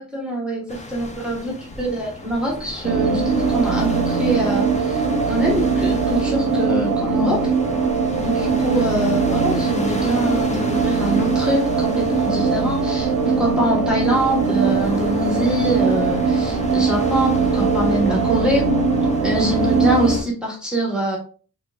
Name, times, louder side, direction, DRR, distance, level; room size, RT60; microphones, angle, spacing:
voice 1, 0.0-7.4 8.2-18.7 19.2-21.2, right 1 dB, ahead, -3 dB, 1.2 m, -24 dB
sound 1, 0.7-20.2, left 1 dB, 20° left, 0.5 m, -34 dB
sound 2, 2.8-20.2, right 4 dB, 60° right, 0.6 m, -21 dB
3.6 x 3.4 x 2.3 m, 0.39 s
wide cardioid pair, 170°, 36 cm